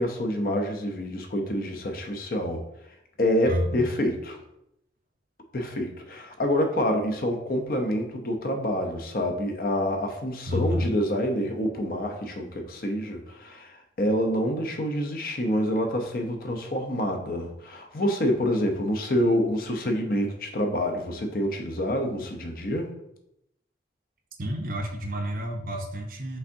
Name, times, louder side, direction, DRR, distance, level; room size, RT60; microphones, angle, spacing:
voice 1, 0.0-2.6 3.2-4.4 5.5-22.9, equal, 50° left, 4 dB, 0.6 m, -27 dB
voice 2, 3.5-3.9 10.5-10.9 24.4-26.4, left 1 dB, 50° right, 3 dB, 0.6 m, -29 dB
5.5 x 3.4 x 2.6 m, 0.81 s
head